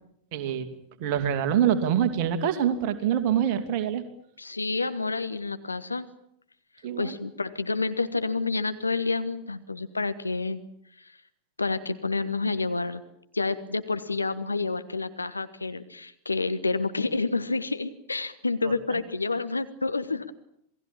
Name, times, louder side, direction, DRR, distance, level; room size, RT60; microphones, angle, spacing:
voice 1, 0.3-0.7 1.0-4.0 6.8-7.2 18.6-18.7, right 9 dB, 45° right, 9 dB, 2.6 m, -25 dB
voice 2, 4.4-6.1 7.0-10.6 11.0-11.2 11.6-13.0 13.3-20.3, left 3 dB, 80° left, 11 dB, 1.2 m, -29 dB
27.5 x 19.0 x 8.9 m, 0.73 s
figure-of-eight pair, 90°, 0 cm